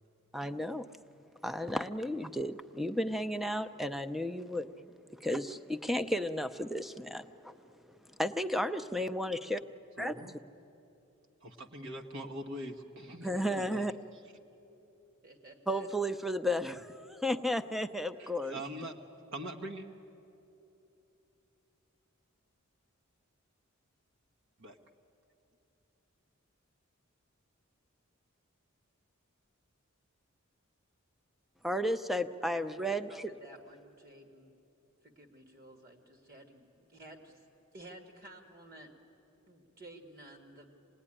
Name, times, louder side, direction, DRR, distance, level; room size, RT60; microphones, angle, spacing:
voice 1, 0.3-0.9 1.4-4.7 5.2-7.5 8.2-9.6 10.0-10.2 13.2-13.9 15.7-18.6 31.6-33.3, equal, ahead, 0.6 m, -33 dB
voice 2, 10.0-10.4 11.4-13.9 18.2-19.0 19.3-19.9 24.6-24.8, right 1 dB, 60° right, 1.3 m, -43 dB
voice 3, 15.2-15.9 32.4-34.5 35.0-37.5 37.7-38.9 39.5-40.7, right 1 dB, 45° right, 1.9 m, -53 dB
26.5 x 19.0 x 10.0 m
head